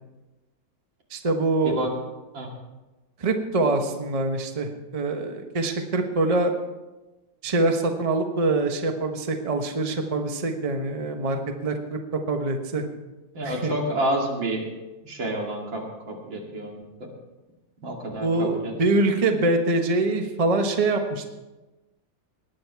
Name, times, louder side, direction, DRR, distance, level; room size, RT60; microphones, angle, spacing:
voice 1, 1.1-1.8 3.2-6.5 7.4-12.0 12.3-12.8 13.4-13.7 18.2-21.3, right 2 dB, 25° right, 5 dB, 0.9 m, -24 dB
voice 2, 13.3-14.7 15.0-16.8 17.8-18.7, right 1 dB, 80° right, 0 dB, 3.1 m, -29 dB
19.5 x 9.2 x 4.6 m, 1.1 s
omnidirectional pair, 2.0 m